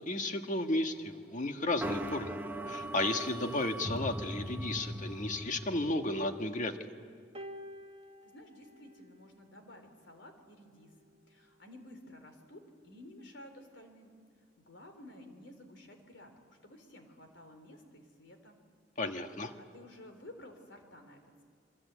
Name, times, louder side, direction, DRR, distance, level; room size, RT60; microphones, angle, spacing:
voice 1, 0.0-2.4 2.7-6.7 19.0-19.5, left 2 dB, 45° left, 6 dB, 1.6 m, -33 dB
sound 1, 1.8-5.9, right 1 dB, 10° right, 1.1 m, -39 dB
sound 2, 7.3-9.8 10.8-11.0, equal, 35° right, 1.3 m, -49 dB
voice 2, 8.2-10.9 11.3-14.2 14.6-18.6 19.6-21.4, left 1 dB, 70° left, 6 dB, 3.8 m, -53 dB
26.5 x 23.0 x 8.3 m, 2.2 s
head